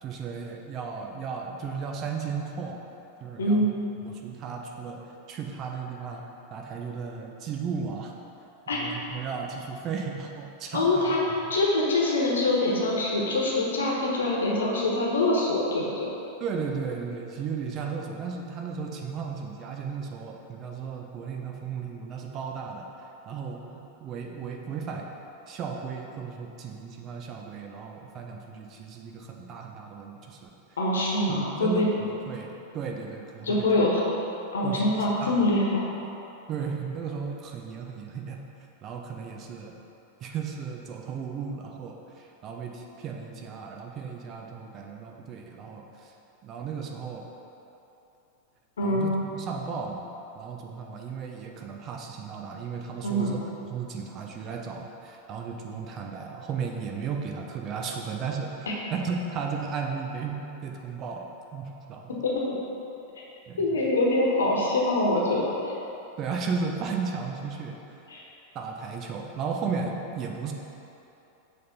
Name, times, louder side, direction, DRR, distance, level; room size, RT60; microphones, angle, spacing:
voice 1, 0.0-2.8 3.2-3.7 4.0-5.0 5.3-6.2 6.5-8.1 8.7-11.1 16.4-22.9 23.3-25.1 25.5-30.5 31.3-31.8 32.3-33.7 34.6-34.9 35.2-35.4 36.5-38.4 38.8-39.7 40.2-46.1 46.4-47.3 48.8-50.1 50.3-53.4 53.7-62.2 63.5-63.6 66.2-67.8 68.5-70.5, right 5 dB, 35° right, 1 dB, 0.7 m, -35 dB
voice 2, 3.4-3.7 8.7-8.8 10.7-16.1 30.8-31.9 33.4-34.0 34.5-35.9 48.8-49.1 53.0-53.3 62.2-62.6 63.6-65.7 68.1-68.2, left 1 dB, 65° left, -3 dB, 1.2 m, -24 dB
6.7 x 3.4 x 5.8 m, 2.9 s
figure-of-eight pair, 90°, 0 cm